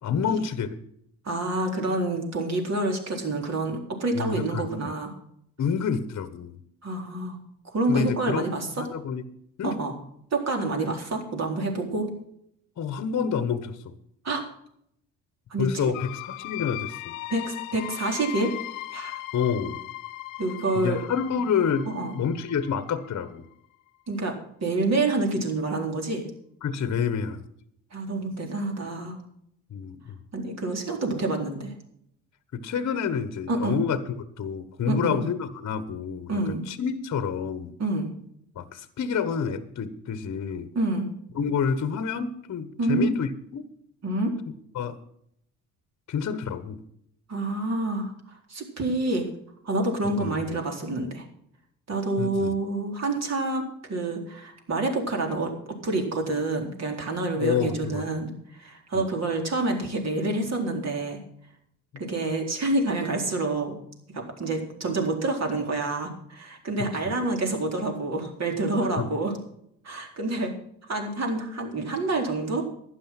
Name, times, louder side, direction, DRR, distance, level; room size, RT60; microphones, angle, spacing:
voice 1, 0.0-0.8 4.1-4.7 5.6-6.6 7.9-8.5 8.8-9.2 9.6-9.8 12.8-14.0 15.6-17.2 19.3-19.8 20.7-21.9 22.1-23.4 26.6-27.4 29.7-30.2 32.5-37.7 38.5-40.7 41.3-43.6 44.7-45.0 46.1-46.8 50.2-50.6 52.2-52.6 57.4-58.0 58.9-59.0 69.0-69.1, left 6 dB, 45° left, 12 dB, 1.3 m, -28 dB
voice 2, 1.2-5.1 6.8-7.4 7.7-8.8 9.6-9.9 10.3-12.1 14.2-14.4 15.5-15.7 17.3-18.5 18.9-19.2 20.4-21.0 21.9-22.2 24.1-26.3 27.9-29.2 30.3-31.7 33.5-33.8 34.9-35.3 36.3-36.6 37.8-38.1 40.7-41.1 42.8-43.1 44.0-44.3 47.3-49.3 49.6-51.3 51.9-55.5 55.8-61.2 62.0-63.8 64.1-69.3 69.8-70.5 70.9-72.6, right 2 dB, 45° right, 2 dB, 4.1 m, -27 dB
sound 1, 15.9-23.5, left 17 dB, 90° left, 0.8 m, -38 dB
12.0 x 10.0 x 5.9 m, 0.71 s
supercardioid pair, 65°, 37 cm